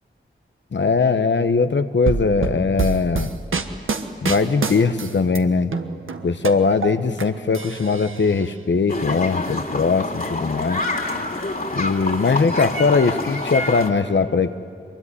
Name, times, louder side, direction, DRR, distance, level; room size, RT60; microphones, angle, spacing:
voice 1, 0.7-3.3 4.2-5.7 6.2-10.8 11.7-14.6, left 4 dB, 65° left, 9 dB, 1.0 m, -20 dB
sound 1, 2.1-5.4 5.7-7.2 7.5-8.4, right 5 dB, 80° right, 1.4 m, -26 dB
sound 2, 8.9-13.9, left 2 dB, 45° left, 3.0 m, -27 dB
23.5 x 22.0 x 9.9 m, 2.3 s
cardioid pair, 50°, 21 cm